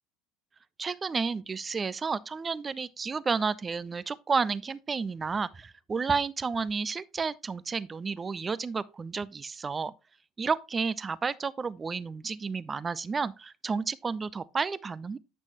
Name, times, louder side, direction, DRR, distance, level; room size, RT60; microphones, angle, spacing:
voice 1, 0.8-9.9 10.4-15.2, right 5 dB, 25° right, 0.4 m, -31 dB
8.8 x 6.1 x 2.9 m
figure-of-eight pair, 65°, 0 cm